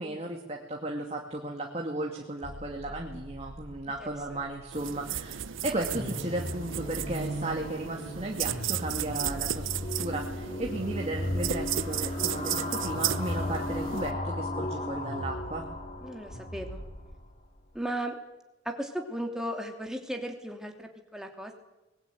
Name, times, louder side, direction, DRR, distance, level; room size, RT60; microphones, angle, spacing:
voice 1, 0.0-9.7 10.0-15.7, right 2 dB, 30° right, 1 dB, 2.4 m, -35 dB
sound 1, 2.4-5.4 5.7-17.8, equal, 80° left, 4.2 m, -43 dB
sound 2, 4.7-14.1, right 11 dB, 85° right, 0.8 m, -35 dB
sound 3, 5.9-16.7, left 1 dB, 35° left, 3.6 m, -36 dB
voice 2, 16.0-16.8 17.7-18.2 18.6-21.5, right 1 dB, 5° right, 2 dB, 2.9 m, -36 dB
24.5 x 20.5 x 9.3 m, 1.1 s
head